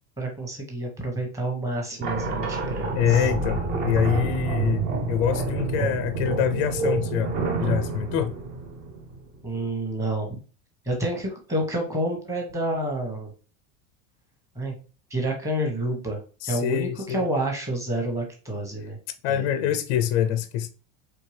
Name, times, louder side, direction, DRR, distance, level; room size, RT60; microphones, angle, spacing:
voice 1, 0.2-3.3 9.4-10.4 10.8-13.3 14.5-14.7 15.1-19.0 19.3-19.5, right 1 dB, 10° right, 1.0 m, -29 dB
sound 1, 2.0-9.4, right 4 dB, 25° right, 0.5 m, -28 dB
voice 2, 3.0-7.3 7.6-8.3 16.4-17.2 19.2-20.7, left 10 dB, 40° left, 0.4 m, -25 dB
4.4 x 3.3 x 3.2 m
supercardioid pair, 170°, 38 cm